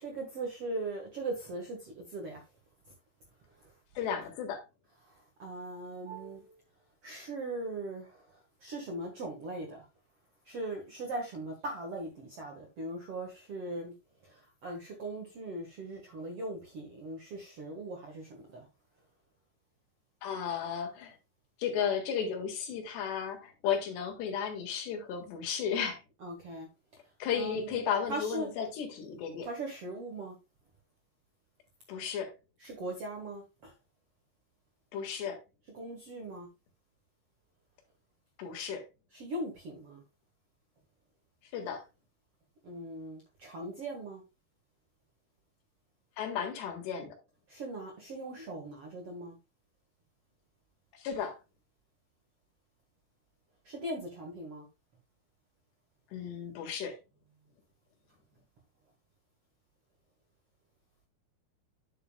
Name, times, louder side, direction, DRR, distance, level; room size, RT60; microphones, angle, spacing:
voice 1, 0.0-2.4 3.6-3.7 5.0-6.6 7.0-9.8 10.4-13.9 14.2-18.6 26.2-26.7 27.4-27.8 28.1-28.5 29.4-30.4 32.6-33.7 35.7-36.5 39.1-40.0 42.6-44.2 47.5-49.3 53.6-54.6, right 2 dB, 60° right, 1.6 m, -40 dB
voice 2, 4.0-4.6 20.2-21.1 21.6-26.0 27.2-29.5 31.9-32.3 34.9-35.4 38.4-38.8 41.5-41.8 46.2-47.2 51.0-51.4 56.1-57.0, left 7 dB, 80° left, 3.8 m, -34 dB
9.8 x 7.2 x 2.2 m
omnidirectional pair, 4.8 m